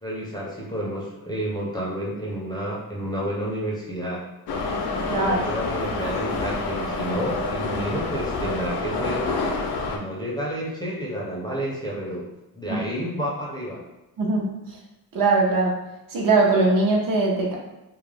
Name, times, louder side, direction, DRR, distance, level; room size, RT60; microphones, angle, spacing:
voice 1, 0.0-4.2 5.3-9.3 9.9-12.3 12.6-13.8, equal, 10° left, -5 dB, 0.4 m, -30 dB
Subway metro underground, 4.5-10.0, left 3 dB, 80° left, 0.5 m, -28 dB
voice 2, 5.1-5.5 12.7-12.8 14.2-14.5 15.1-15.7 16.1-17.6, right 3 dB, 60° right, -1 dB, 0.6 m, -21 dB
2.3 x 2.0 x 3.2 m, 0.98 s
wide cardioid pair, 135°, 38 cm